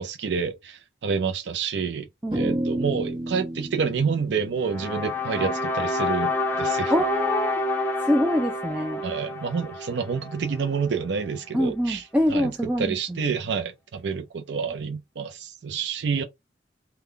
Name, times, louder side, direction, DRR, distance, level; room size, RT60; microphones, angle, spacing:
voice 1, 0.0-2.0 2.3-6.3 6.6-6.9 9.0-12.0 12.3-12.5 12.8-16.2, right 5 dB, 75° right, 0.5 m, -28 dB
voice 2, 2.2-2.6 6.9-7.6 8.0-9.0 11.5-13.4, left 1 dB, 10° right, 0.4 m, -25 dB
sound 1, 2.3-6.8, right 1 dB, 25° right, 1.0 m, -32 dB
sound 2, 4.6-10.9, left 2 dB, 10° left, 0.8 m, -28 dB
3.6 x 2.2 x 3.2 m
head